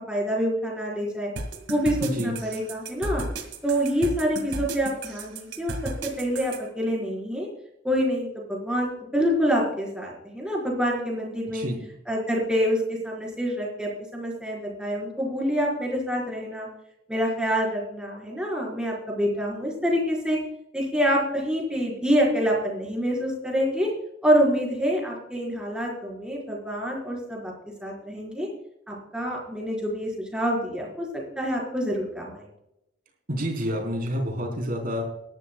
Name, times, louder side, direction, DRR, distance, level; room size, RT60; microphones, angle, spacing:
voice 1, 0.1-1.3 1.7-3.2 3.6-5.9 6.2-7.5 7.8-11.7 12.1-16.7 17.1-20.4 20.7-23.9 24.2-27.5 27.8-28.5 28.9-32.5, equal, 5° right, -2 dB, 4.3 m, -26 dB
sound 1, 1.4-6.6, right 2 dB, 85° right, 2.0 m, -33 dB
voice 2, 2.0-2.3 11.5-11.8 33.3-35.0, equal, 50° right, 0 dB, 3.9 m, -28 dB
20.0 x 12.0 x 2.3 m, 0.82 s
head